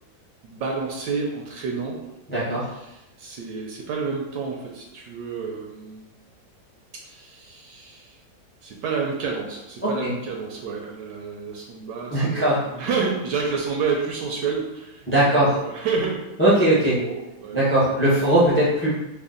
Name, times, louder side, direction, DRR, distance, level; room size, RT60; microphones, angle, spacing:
voice 1, 0.4-2.0 2.6-6.1 6.9-8.2 8.6-18.0, right 5 dB, 75° right, 0 dB, 1.1 m, -30 dB
voice 2, 2.3-2.7 12.1-12.6 15.1-15.6 16.4-17.0 17.5-19.0, right 1 dB, 20° left, -7 dB, 0.3 m, -19 dB
3.4 x 2.1 x 3.7 m, 0.96 s
omnidirectional pair, 2.1 m